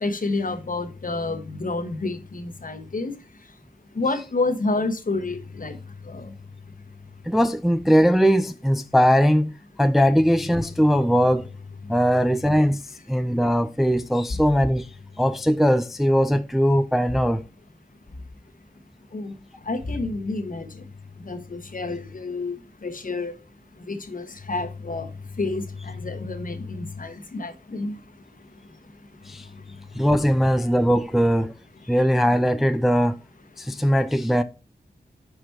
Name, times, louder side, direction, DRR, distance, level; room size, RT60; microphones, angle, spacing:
voice 1, 0.0-3.1 3.9-5.8 6.1-6.3 19.1-19.3 19.7-20.7 21.3-22.6 22.8-23.3 23.9-25.1 25.4-27.9, left 3 dB, 55° left, 1.0 m, -29 dB
voice 2, 7.3-9.5 9.8-11.5 11.9-14.9 15.2-17.4 29.3-29.5 29.9-31.5 31.9-33.2 33.6-34.4, equal, ahead, 0.4 m, -20 dB
5.7 x 4.9 x 4.5 m
wide cardioid pair, 95°, 17 cm